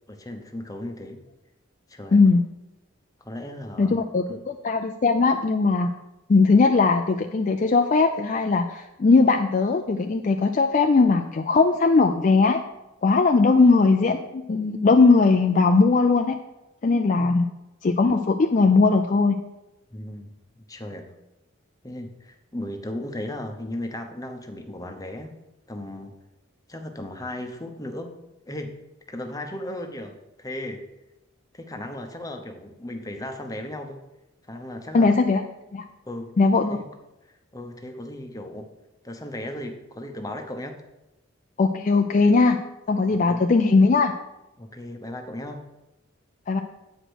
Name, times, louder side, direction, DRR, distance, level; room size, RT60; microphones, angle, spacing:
voice 1, 0.1-1.2 1.9-2.2 3.2-4.0 4.3-4.4 17.1-17.3 19.9-21.0 21.8-25.3 25.7-26.1 26.7-28.1 28.5-28.7 29.1-30.8 31.5-34.0 34.5-35.1 36.1-36.3 36.7-36.9 37.5-38.7 39.0-40.8 43.1-43.4 44.6-45.6, left 1 dB, 15° left, 5 dB, 0.8 m, -36 dB
voice 2, 3.8-5.9 6.3-12.6 13.0-16.4 16.8-17.4 17.8-19.4 34.9-35.4 35.7-35.8 36.4-36.8 41.6-42.6 42.9-44.1 46.5-46.6, left 4 dB, 40° left, 5 dB, 0.4 m, -19 dB
8.9 x 5.0 x 6.2 m, 0.96 s
head